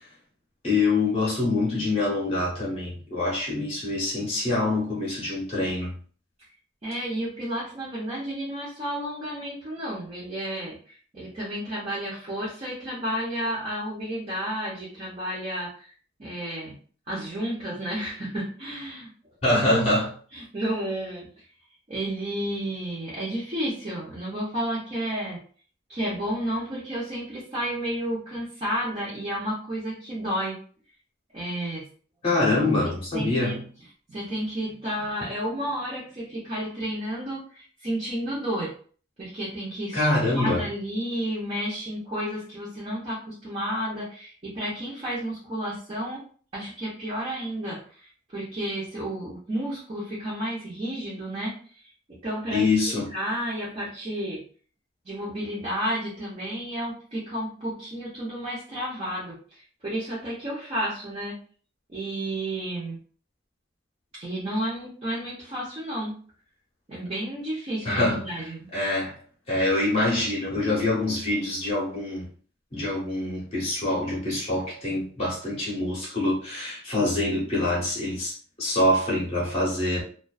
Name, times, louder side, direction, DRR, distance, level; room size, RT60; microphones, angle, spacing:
voice 1, 0.6-5.9 19.4-20.1 32.2-33.6 39.9-40.6 52.5-53.1 67.8-69.1 69.5-72.2 72.7-80.0, left 2 dB, 30° left, 0.8 m, -25 dB
voice 2, 6.8-15.9 16.2-16.7 17.1-20.0 20.3-21.3 21.9-25.4 25.9-30.6 31.3-31.9 32.8-33.6 34.1-38.7 39.2-46.2 46.5-52.7 53.1-54.4 55.0-61.4 61.9-63.0 64.1-66.2 66.9-68.7, right 1 dB, 30° right, 0.8 m, -31 dB
2.4 x 2.3 x 2.3 m
head